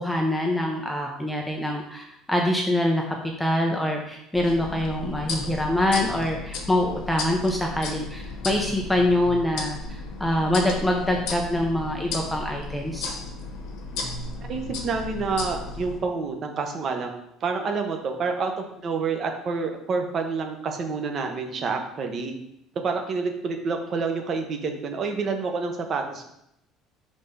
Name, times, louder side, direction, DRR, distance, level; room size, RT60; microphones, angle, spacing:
voice 1, 0.0-3.0 3.4-13.2, left 1 dB, 5° left, 1 dB, 0.5 m, -25 dB
sound 1, 4.3-16.0, left 3 dB, 65° left, 1.1 m, -34 dB
voice 2, 14.4-17.1 17.4-22.3 22.8-26.2, right 4 dB, 30° right, 4 dB, 0.8 m, -28 dB
5.3 x 3.4 x 5.4 m, 0.79 s
cardioid pair, 180°, 0 cm